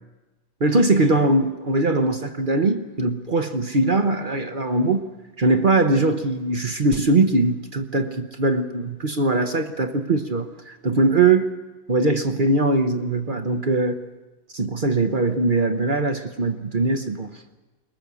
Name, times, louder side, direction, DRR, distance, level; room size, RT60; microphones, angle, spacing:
voice 1, 0.6-5.0 5.4-11.5 11.9-14.0 14.5-17.4, right 2 dB, 45° right, 8 dB, 0.6 m, -21 dB
23.0 x 20.5 x 7.0 m, 1.2 s
omnidirectional pair, 2.2 m